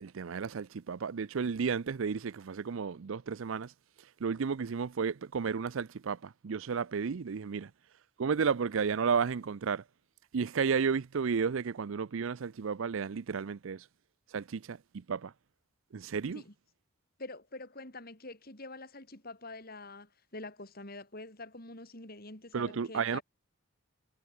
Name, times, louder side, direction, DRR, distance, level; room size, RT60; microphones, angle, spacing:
voice 1, 0.0-3.7 4.2-7.7 8.2-9.8 10.3-13.9 14.3-15.3 15.9-16.4 22.5-23.2, right 6 dB, 70° right, 0.5 m, -32 dB
voice 2, 17.2-23.2, left 2 dB, 45° left, 4.4 m, -46 dB
head